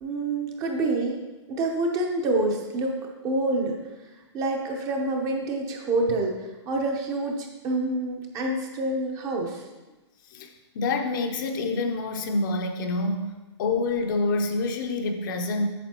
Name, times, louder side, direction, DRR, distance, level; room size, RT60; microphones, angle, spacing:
voice 1, 0.0-1.2 1.5-4.1 4.3-9.7, right 2 dB, 20° right, 1 dB, 0.8 m, -27 dB
voice 2, 10.3-13.3 13.6-15.7, left 3 dB, 45° left, 4 dB, 0.7 m, -27 dB
8.3 x 6.6 x 3.0 m, 1.1 s
hypercardioid pair, 155°, 15 cm